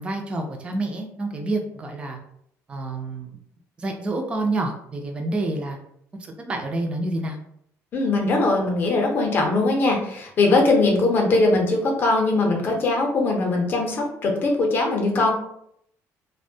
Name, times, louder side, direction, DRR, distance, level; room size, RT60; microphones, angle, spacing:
voice 1, 0.0-2.2 2.7-3.4 3.8-5.8 6.2-7.4, right 2 dB, 20° right, 3 dB, 0.3 m, -28 dB
voice 2, 7.9-15.3, left 2 dB, 35° left, 1 dB, 0.6 m, -21 dB
2.5 x 2.1 x 2.6 m, 0.71 s
cardioid pair, 170°, 6 cm